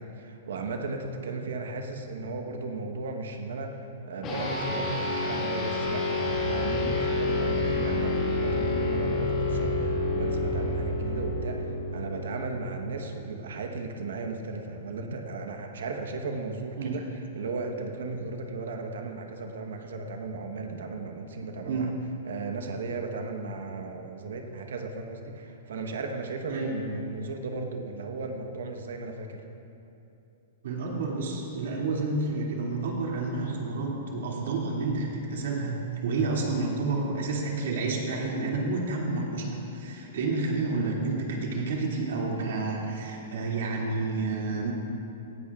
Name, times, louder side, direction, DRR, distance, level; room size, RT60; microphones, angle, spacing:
voice 1, 0.0-21.9 22.2-29.4, right 3 dB, 80° right, 4 dB, 1.1 m, -36 dB
sound 1, 4.2-13.9, left 3 dB, 20° left, 1.7 m, -29 dB
sound 2, 6.2-11.5, right 4 dB, 20° right, 0.6 m, -36 dB
voice 2, 30.6-44.7, right 3 dB, 60° right, -3 dB, 2.4 m, -30 dB
17.5 x 14.0 x 2.4 m, 2.8 s
hypercardioid pair, 175°, 0 cm